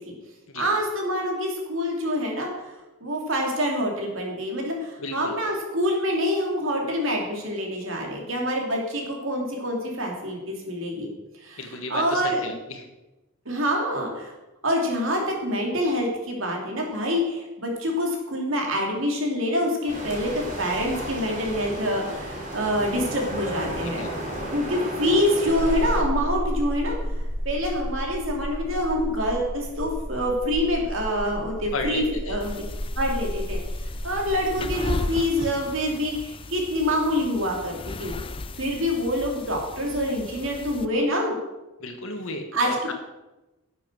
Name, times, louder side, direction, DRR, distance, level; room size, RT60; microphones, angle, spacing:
voice 1, 0.5-2.7 3.0-11.1 11.4-11.6 11.9-12.5 13.4-14.3 14.6-24.0 24.5-27.0 27.4-32.5 33.0-33.6 34.0-38.1 38.6-41.3 42.5-42.9, equal, 60° right, 0 dB, 2.8 m, -26 dB
voice 2, 5.0-5.3 11.6-12.9 23.8-24.1 31.7-32.4 41.8-42.9, left 2 dB, 70° left, 5 dB, 1.6 m, -33 dB
sound 1, 19.9-26.0, right 1 dB, 35° right, 3.0 m, -33 dB
sound 2, 25.5-34.5, equal, 5° right, 4.0 m, -31 dB
sound 3, 32.4-40.9, left 2 dB, 25° left, 0.5 m, -36 dB
11.5 x 7.5 x 6.2 m, 1.0 s
head